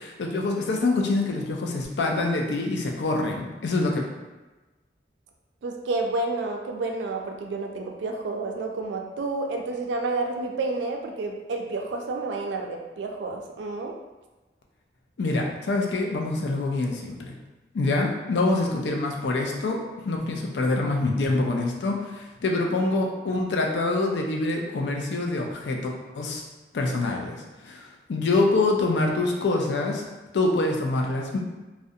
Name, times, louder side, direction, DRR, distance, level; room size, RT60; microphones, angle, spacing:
voice 1, 0.0-4.0 15.2-17.3 17.7-26.4 26.7-27.4 27.6-30.0 30.3-31.4, left 2 dB, 85° left, 1 dB, 0.4 m, -25 dB
voice 2, 5.6-14.0, right 3 dB, 90° right, 2 dB, 0.3 m, -30 dB
2.5 x 2.1 x 2.6 m, 1.1 s
head